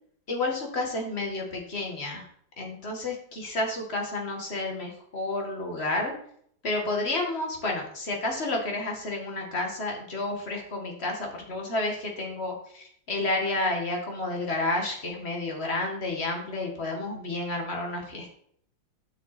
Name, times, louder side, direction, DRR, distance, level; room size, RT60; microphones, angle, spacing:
voice 1, 0.3-2.3 2.6-6.1 6.6-18.3, left 2 dB, 30° left, 1 dB, 2.2 m, -30 dB
12.0 x 6.0 x 4.3 m, 0.64 s
omnidirectional pair, 2.2 m